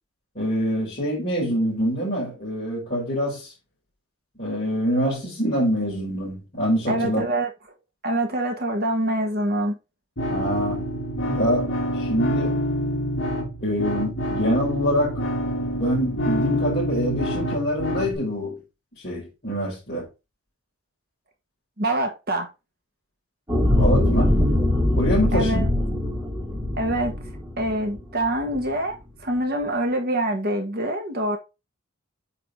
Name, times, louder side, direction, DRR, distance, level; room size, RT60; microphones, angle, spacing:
voice 1, 0.3-3.5 4.4-7.2 10.3-10.9 11.3-12.7 13.6-15.2 15.8-18.6 19.0-20.1 23.8-24.3 25.0-25.7, equal, 35° left, 4.2 m, -25 dB
voice 2, 6.9-7.5 8.0-9.8 21.8-22.5 25.3-25.7 26.8-27.1 27.6-29.0 29.2-31.4, right 1 dB, 45° right, 1.6 m, -25 dB
sound 1, 10.2-18.2, equal, 55° left, 2.3 m, -27 dB
sound 2, 23.5-28.0 28.5-28.6, left 1 dB, 10° right, 2.7 m, -22 dB
8.3 x 4.1 x 3.8 m
head